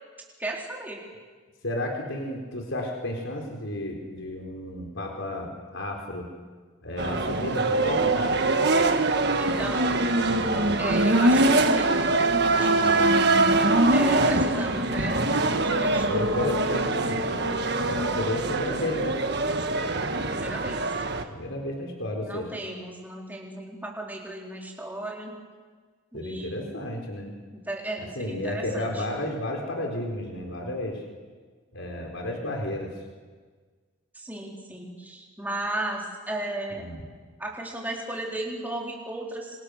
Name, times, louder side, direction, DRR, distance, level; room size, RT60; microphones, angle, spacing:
voice 1, 0.4-1.0 9.4-10.0 10.8-12.1 12.4-13.2 13.9-15.2 15.6-16.3 20.3-20.8 22.2-25.4 26.1-26.7 27.5-29.0 34.1-36.9 37.4-39.6, right 1 dB, 10° right, -2 dB, 4.4 m, -35 dB
voice 2, 1.6-6.3 6.8-8.3 9.9-10.0 12.8-13.2 14.4-14.6 16.1-19.2 21.3-22.5 26.1-27.3 28.2-31.0 31.7-32.9 36.8-37.1, left 1 dB, 70° left, 1 dB, 4.3 m, -32 dB
sound 1, 7.0-21.2, right 2 dB, 55° right, 1.6 m, -23 dB
27.5 x 26.5 x 6.6 m, 1.5 s
head